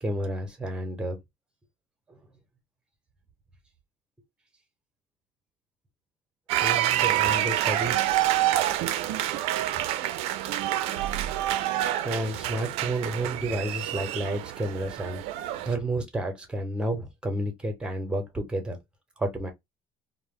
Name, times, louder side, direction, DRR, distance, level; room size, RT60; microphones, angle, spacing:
voice 1, 0.0-1.2 6.6-8.1 12.0-15.2 15.7-18.8 19.2-19.5, right 1 dB, 10° right, 0.8 m, -31 dB
sound 1, 6.5-15.7, right 13 dB, 75° right, 0.4 m, -27 dB
2.1 x 2.1 x 3.5 m
cardioid pair, 125°, 10 cm